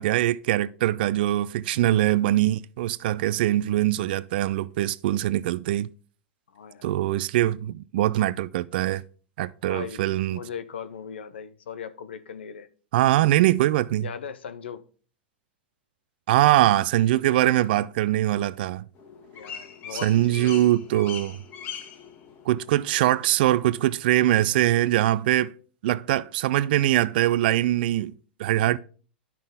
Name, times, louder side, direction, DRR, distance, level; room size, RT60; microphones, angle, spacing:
voice 1, 0.0-5.9 6.8-9.0 9.4-10.4 12.9-14.1 16.3-18.9 19.9-21.4 22.5-25.5 25.8-28.8, right 14 dB, 60° right, 0.4 m, -22 dB
voice 2, 1.8-2.1 6.5-6.9 9.6-10.0 10.3-12.7 14.0-14.8 19.3-20.6, left 7 dB, 80° left, 0.7 m, -38 dB
sound 1, 18.9-25.2, left 7 dB, 40° left, 1.8 m, -43 dB
10.5 x 5.9 x 3.6 m
hypercardioid pair, 100°, 6 cm